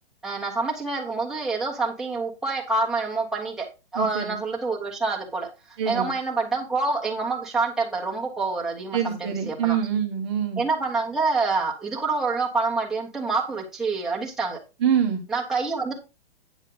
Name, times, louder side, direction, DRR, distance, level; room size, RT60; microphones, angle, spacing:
voice 1, 0.2-3.7 3.9-9.8 10.6-14.6 15.3-15.9, right 3 dB, ahead, -2 dB, 1.2 m, -27 dB
voice 2, 4.0-4.4 5.8-6.1 8.9-10.6 14.8-15.2, right 8 dB, 25° right, 4 dB, 1.0 m, -25 dB
9.0 x 6.2 x 3.9 m, 0.28 s
hypercardioid pair, 165°, 32 cm